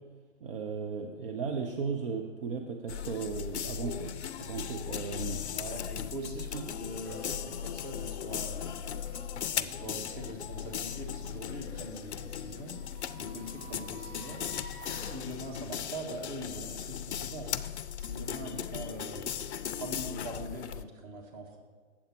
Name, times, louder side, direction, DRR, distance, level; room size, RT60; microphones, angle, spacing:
voice 1, 0.4-4.1 4.4-5.4 6.5-6.8, right 5 dB, 45° right, 3 dB, 0.8 m, -36 dB
sound 1, 2.9-20.8, left 9 dB, 60° left, 0.5 m, -38 dB
voice 2, 5.5-8.7 9.5-12.8 13.2-14.4 15.0-17.5 18.0-19.3 19.7-21.6, right 1 dB, 25° right, 2 dB, 1.3 m, -42 dB
sound 2, 7.0-17.4, left 1 dB, 5° left, 2.1 m, -51 dB
8.8 x 7.3 x 4.5 m, 1.5 s
figure-of-eight pair, 125°, 38 cm